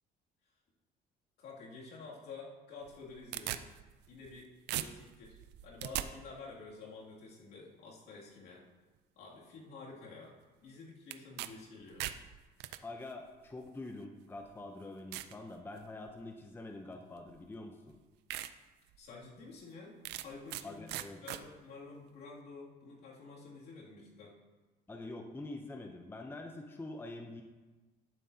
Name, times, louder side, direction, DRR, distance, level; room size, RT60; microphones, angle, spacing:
voice 1, 1.4-3.6 4.1-8.7 9.2-10.3 10.6-12.0 19.0-24.3, left 4 dB, 70° left, -4 dB, 2.6 m, -50 dB
sound 1, 2.8-4.4 4.7-6.1 11.1-11.5 11.8-12.8 13.7-13.8 14.4-14.5 15.1-15.3 15.8-16.2 17.3-17.4 17.9-18.0 18.3-18.5 18.9-19.0 20.0-20.6 20.9-21.4, right 14 dB, 85° right, 0.4 m, -39 dB
voice 2, 12.8-18.0 20.6-21.2 24.9-27.4, left 2 dB, 15° left, 4 dB, 0.7 m, -45 dB
13.0 x 7.4 x 2.8 m, 1.2 s
cardioid pair, 110°, 17 cm